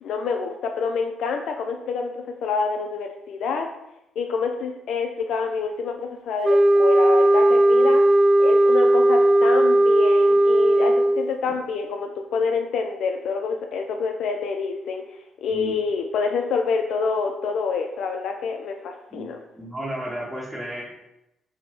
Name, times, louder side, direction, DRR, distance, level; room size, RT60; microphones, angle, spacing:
voice 1, 0.0-3.7 4.2-8.0 8.4-15.0 15.4-19.4, left 5 dB, 75° left, 4 dB, 0.3 m, -27 dB
sound 1, 6.4-11.3, right 1 dB, 20° right, 0.3 m, -17 dB
voice 2, 19.1-20.9, right 1 dB, 5° right, -7 dB, 0.8 m, -33 dB
4.4 x 2.1 x 3.1 m, 0.87 s
cardioid pair, 90°, 0 cm